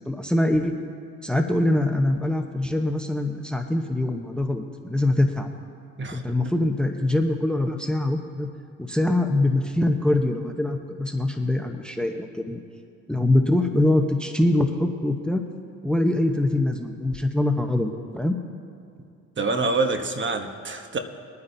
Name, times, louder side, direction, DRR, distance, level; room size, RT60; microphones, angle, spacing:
voice 1, 0.1-0.8 1.2-5.5 6.1-8.5 8.8-12.6 13.1-15.4 15.8-18.4, left 1 dB, 5° left, 5 dB, 0.8 m, -23 dB
voice 2, 19.4-21.0, right 3 dB, 35° right, 6 dB, 1.0 m, -26 dB
23.0 x 9.6 x 2.7 m, 2.4 s
cardioid pair, 85°, 35 cm